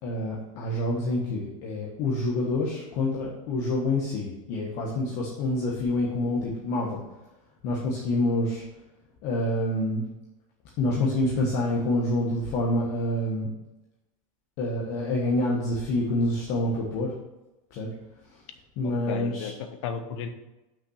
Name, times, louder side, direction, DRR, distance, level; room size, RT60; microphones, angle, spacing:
voice 1, 0.0-7.0 7.6-8.6 9.2-10.0 10.8-13.5 14.6-17.1 17.7-17.9 18.2-18.4 18.8-19.5, left 1 dB, 40° left, -3 dB, 1.4 m, -27 dB
voice 2, 18.8-20.3, left 6 dB, 55° left, 8 dB, 1.0 m, -34 dB
6.1 x 5.6 x 6.5 m, 1.0 s
supercardioid pair, 160°, 18 cm